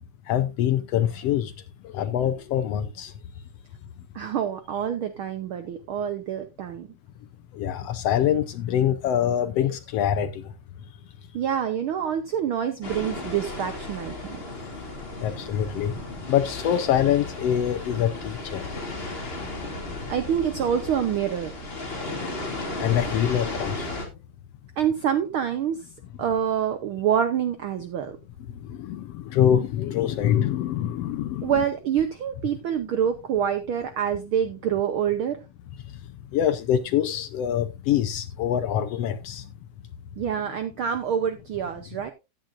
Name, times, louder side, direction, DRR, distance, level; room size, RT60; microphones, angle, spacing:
voice 1, 0.3-1.5 1.8-3.1 7.5-10.4 15.2-15.9 16.3-18.6 19.9-20.0 22.8-23.9 28.6-31.5 36.3-39.4, left 10 dB, 75° left, 1.5 m, -24 dB
voice 2, 4.1-6.9 11.3-14.4 20.1-21.5 24.8-25.9 26.2-28.2 31.4-35.4 40.2-42.1, right 8 dB, 75° right, 1.2 m, -26 dB
sound 1, 12.8-24.0, left 2 dB, 20° left, 2.4 m, -35 dB
14.5 x 9.2 x 2.5 m
omnidirectional pair, 3.3 m